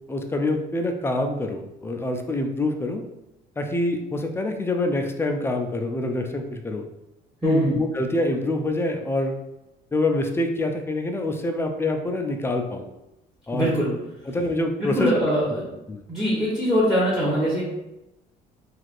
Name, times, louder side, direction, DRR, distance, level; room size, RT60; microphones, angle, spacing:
voice 1, 0.1-3.0 3.6-6.9 7.4-9.4 9.9-12.8 13.5-13.7 14.3-15.1 15.9-16.0, left 2 dB, 15° left, 4 dB, 0.3 m, -25 dB
voice 2, 7.4-7.7 13.5-13.9 14.8-15.7 16.1-17.6, equal, ahead, -7 dB, 0.9 m, -22 dB
3.2 x 2.4 x 2.5 m, 0.93 s
cardioid pair, 110°, 17 cm